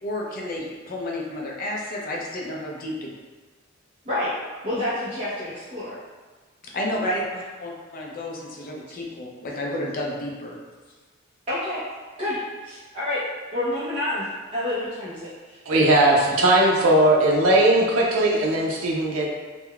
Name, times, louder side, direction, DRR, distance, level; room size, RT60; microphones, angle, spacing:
voice 1, 0.0-3.1 6.6-10.6, left 1 dB, 45° left, -2 dB, 0.5 m, -31 dB
voice 2, 4.6-6.0 11.5-11.8 12.2-13.2 13.5-15.6, left 1 dB, 30° right, -12 dB, 0.6 m, -28 dB
voice 3, 15.7-19.3, right 1 dB, 80° right, -2 dB, 0.5 m, -18 dB
3.6 x 2.1 x 2.2 m, 1.3 s
head